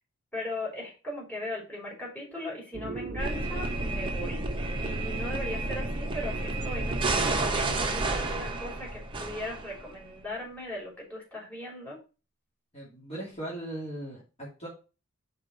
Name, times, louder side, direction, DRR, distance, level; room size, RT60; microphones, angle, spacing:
voice 1, 0.3-4.4 4.8-12.0, left 1 dB, 5° left, -5 dB, 3.5 m, -38 dB
sound 1, 2.7-8.8, right 2 dB, 40° right, 0.7 m, -42 dB
sound 2, 3.2-10.0, right 2 dB, 25° right, 0.9 m, -31 dB
voice 2, 12.7-14.7, right 1 dB, 30° left, -6 dB, 2.4 m, -39 dB
5.1 x 4.5 x 5.9 m, 0.32 s
head